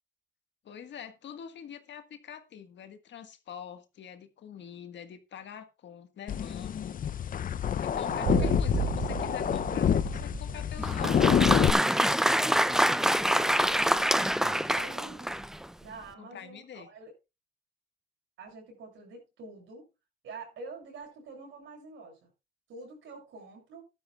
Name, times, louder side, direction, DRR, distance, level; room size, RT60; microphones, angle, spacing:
voice 1, 0.6-7.0 7.8-11.2 13.2-14.0 16.2-16.9, left 8 dB, 65° left, 8 dB, 1.7 m, -45 dB
sound 1, 6.3-11.7, left 8 dB, 45° left, 0.6 m, -27 dB
sound 2, 7.9-10.7, right 9 dB, 60° right, 0.7 m, -34 dB
voice 2, 8.1-8.6 13.7-13.8 14.5-15.3 15.8-17.1 18.4-19.9 20.2-22.3 22.7-23.8, right 4 dB, 80° right, 1 dB, 7.4 m, -45 dB
Applause, 10.8-15.6, equal, ahead, 0.5 m, -26 dB
15.5 x 12.0 x 2.4 m, 0.27 s
cardioid pair, 90°, 20 cm